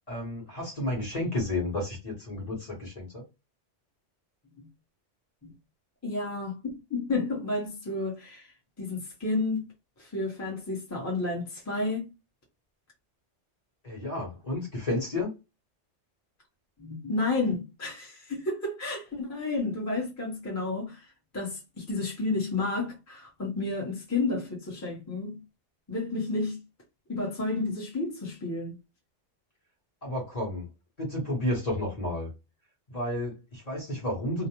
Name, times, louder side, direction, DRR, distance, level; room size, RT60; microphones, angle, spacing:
voice 1, 0.1-3.2 13.8-15.3 30.0-30.7 31.0-32.3 32.9-34.5, left 1 dB, 35° left, 1.0 m, -31 dB
voice 2, 6.0-8.5 8.8-9.7 10.0-12.1 16.8-21.0 21.3-25.4 25.9-26.6 27.1-28.8, left 3 dB, 15° left, 0.8 m, -31 dB
2.4 x 2.0 x 2.9 m
omnidirectional pair, 1.2 m